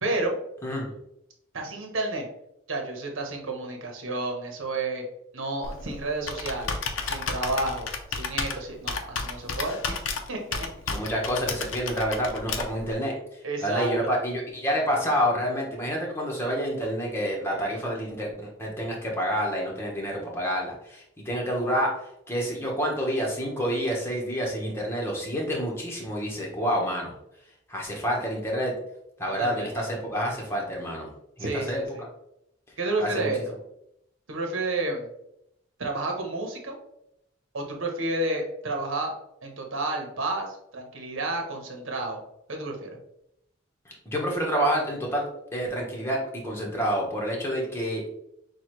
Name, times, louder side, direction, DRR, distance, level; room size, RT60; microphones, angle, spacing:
voice 1, 0.0-0.3 1.5-2.3 2.7-5.0 5.3-6.8 7.0-9.9 10.3-10.7 13.4-13.9 29.4-29.7 31.4-32.0 32.8-33.5 34.3-35.1 35.8-36.7 37.5-39.1 39.4-42.2 42.5-42.9, right 2 dB, 85° right, 2 dB, 1.0 m, -30 dB
voice 2, 0.6-0.9 10.9-21.9 22.3-27.1 27.7-28.7 29.2-31.1 31.4-31.8 33.0-33.3 44.0-45.3 45.5-46.2 46.4-48.1, equal, 10° left, -2 dB, 1.0 m, -28 dB
Computer keyboard, 5.6-12.9, left 4 dB, 80° left, 0.6 m, -33 dB
6.2 x 2.4 x 3.0 m, 0.79 s
head